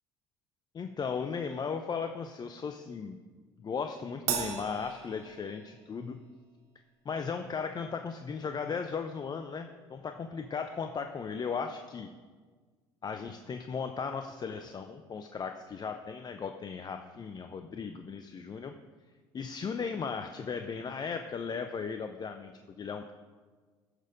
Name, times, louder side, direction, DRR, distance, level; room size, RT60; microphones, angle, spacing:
voice 1, 0.7-3.2 3.6-6.2 7.0-12.1 13.0-18.7 19.3-23.1, left 5 dB, 35° left, 7 dB, 0.7 m, -36 dB
Crash cymbal, 4.3-5.9, right 8 dB, 65° right, 1.4 m, -36 dB
14.0 x 6.5 x 5.2 m, 1.4 s
hypercardioid pair, 65°, 12 cm